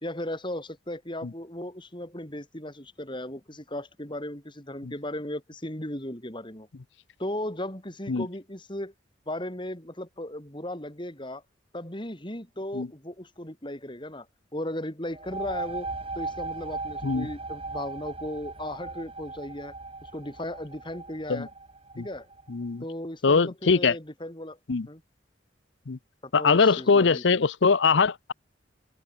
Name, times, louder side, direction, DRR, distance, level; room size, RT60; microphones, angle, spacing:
voice 1, 0.0-6.7 7.2-8.9 9.3-11.4 11.7-14.3 14.5-19.7 20.0-21.5 22.0-22.3 22.8-24.6 24.9-25.0 26.2-27.2, left 1 dB, 25° left, 4.7 m, -36 dB
sound 1, 15.1-22.5, right 3 dB, 30° right, 4.4 m, -38 dB
voice 2, 22.5-22.8 23.2-24.0 24.7-24.9 25.9-26.0 26.3-28.3, left 4 dB, 75° left, 0.7 m, -22 dB
head